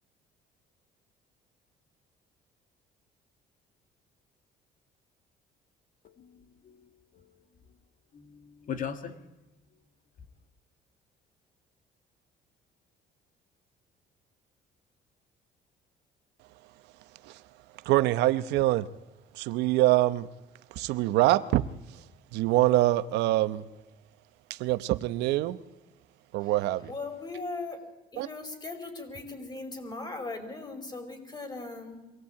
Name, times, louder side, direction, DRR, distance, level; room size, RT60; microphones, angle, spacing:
voice 1, 6.0-6.8 7.1-7.5 8.1-9.1, left 7 dB, 55° left, 2.1 m, -40 dB
voice 2, 17.7-18.9 19.3-20.3 20.7-22.1 22.3-23.7 24.5-25.6 26.3-26.9 28.2-28.3, right 16 dB, 90° right, 0.9 m, -25 dB
voice 3, 26.4-27.9 28.1-32.1, left 3 dB, 25° left, 5.2 m, -39 dB
24.0 x 18.0 x 8.7 m
cardioid pair, 110°, 17 cm